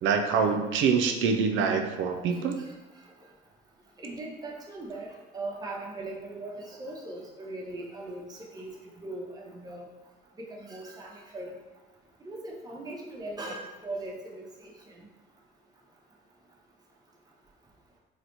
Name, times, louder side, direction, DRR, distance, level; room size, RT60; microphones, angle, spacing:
voice 1, 0.0-2.6, right 5 dB, 80° right, 5 dB, 0.4 m, -25 dB
voice 2, 4.0-5.1 5.3-8.2 8.5-8.7 9.0-9.9 10.6-11.5 12.3-14.4, right 2 dB, 20° right, -2 dB, 0.6 m, -39 dB
3.9 x 2.1 x 2.9 m, 1.1 s
cardioid pair, 90°, 20 cm